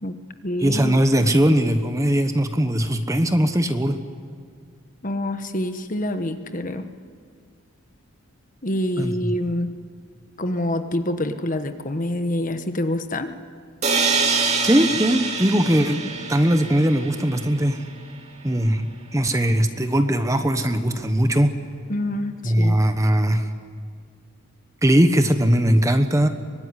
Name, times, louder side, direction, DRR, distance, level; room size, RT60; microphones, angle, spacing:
voice 1, 0.0-1.0 5.0-6.9 8.6-9.7 10.4-13.3 21.9-22.8, left 1 dB, 35° left, 8 dB, 1.2 m, -26 dB
voice 2, 0.6-4.0 9.0-9.3 14.6-16.0 16.3-17.8 18.4-21.5 22.4-23.5 24.8-26.3, equal, 15° right, 8 dB, 1.1 m, -20 dB
sound 1, 13.8-17.6, right 4 dB, 30° right, 2.7 m, -25 dB
24.0 x 21.0 x 9.8 m, 2.1 s
head